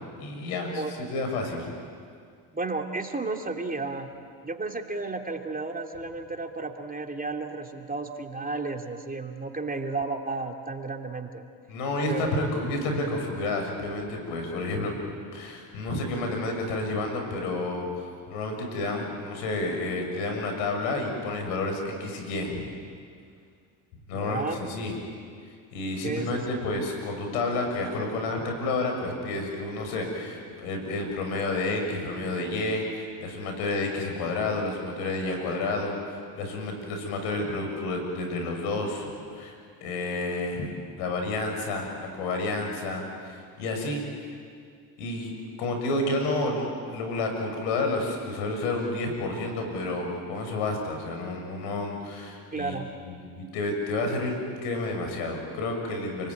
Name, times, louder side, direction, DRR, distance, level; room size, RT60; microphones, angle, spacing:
voice 1, 0.2-0.8 1.1-1.7 11.7-14.9 15.3-22.6 24.1-25.0 25.7-39.5 39.8-40.7 41.0-44.0 45.0-45.3 45.6-52.8 53.1-56.3, left 2 dB, 80° left, 3 dB, 7.0 m, -30 dB
voice 2, 2.5-4.1 4.4-11.4 12.1-12.4 24.1-24.6 26.0-26.4 37.4-37.5 52.5-52.9, right 3 dB, 20° right, 3 dB, 2.9 m, -33 dB
30.0 x 20.0 x 9.8 m, 2.2 s
supercardioid pair, 75°, 46 cm